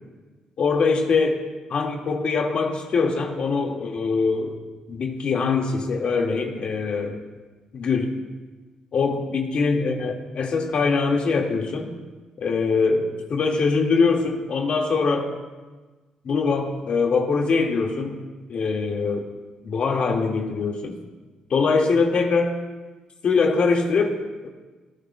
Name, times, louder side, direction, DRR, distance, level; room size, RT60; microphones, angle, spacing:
voice 1, 0.6-1.4 1.7-4.6 4.9-7.2 7.7-8.1 8.9-11.9 12.4-15.3 16.2-18.2 18.5-19.3 19.6-21.0 21.5-22.6 23.2-24.5, left 4 dB, 55° left, 1 dB, 1.9 m, -23 dB
19.0 x 14.0 x 2.3 m, 1.3 s
cardioid pair, 90°, 2 cm